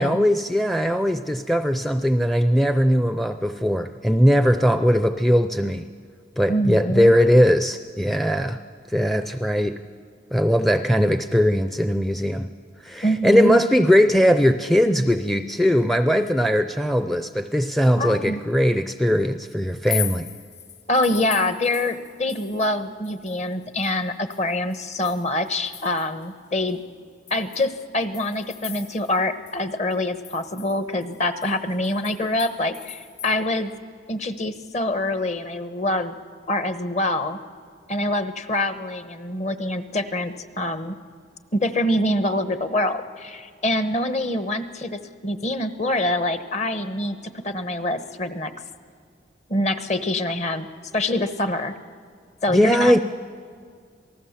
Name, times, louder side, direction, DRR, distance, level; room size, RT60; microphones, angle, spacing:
voice 1, 0.0-5.9 6.4-8.6 8.9-9.7 10.3-12.5 12.8-20.3 52.5-53.0, equal, ahead, 10 dB, 0.5 m, -20 dB
voice 2, 6.5-7.1 13.0-13.6 18.0-18.4 20.9-26.8 27.3-33.7 34.1-36.1 36.5-37.4 37.9-40.9 41.5-48.5 49.5-50.7 50.9-51.7 52.4-53.0, left 1 dB, 40° left, 11 dB, 1.1 m, -25 dB
sound 1, 19.7-22.8 23.0-26.2 26.7-26.8 27.3-29.2 29.5-29.6 29.9-33.3, left 10 dB, 65° left, 3.3 m, -38 dB
27.5 x 19.0 x 7.4 m, 2.1 s
head